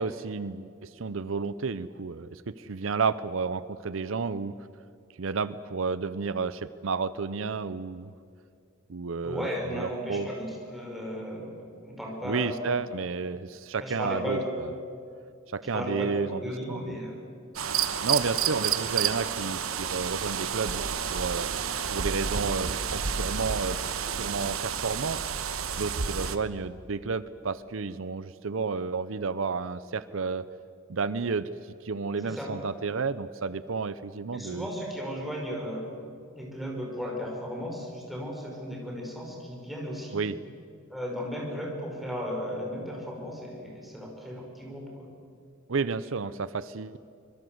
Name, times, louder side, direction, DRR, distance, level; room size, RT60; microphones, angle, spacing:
voice 1, 0.0-4.5 5.2-8.1 8.9-9.5 9.7-10.3 12.2-14.8 15.5-16.4 16.7-16.9 18.0-21.5 21.9-23.8 24.1-25.3 25.8-30.5 30.9-31.5 31.8-34.7 40.1-40.4 45.7-47.0, right 4 dB, 70° right, 15 dB, 0.6 m, -31 dB
voice 2, 9.2-12.9 13.8-14.5 15.7-17.2 32.2-32.5 34.3-35.8 36.3-40.2 40.9-45.1, equal, ahead, -2 dB, 5.7 m, -35 dB
sound 1, 17.6-26.4, right 7 dB, 90° right, 1.2 m, -30 dB
25.0 x 21.5 x 7.9 m, 2.4 s
head